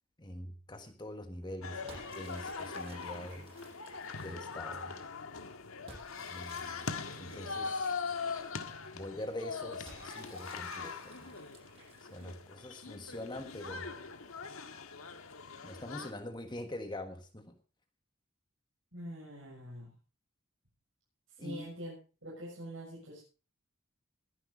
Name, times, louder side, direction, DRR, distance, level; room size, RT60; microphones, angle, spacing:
voice 1, 0.2-3.5 4.2-5.0 6.3-8.0 8.9-11.4 12.0-13.9 15.6-17.6 21.4-21.7, left 1 dB, 20° left, 7 dB, 1.4 m, -44 dB
sound 1, 1.6-16.1, left 5 dB, 90° left, 1.6 m, -41 dB
sound 2, 1.9-4.8 5.9-8.9 9.9-12.5, right 2 dB, 25° right, 7.6 m, -55 dB
voice 2, 18.9-19.9 21.4-21.9 22.2-23.2, equal, 70° right, -5 dB, 7.0 m, -44 dB
21.0 x 10.5 x 4.1 m, 0.34 s
head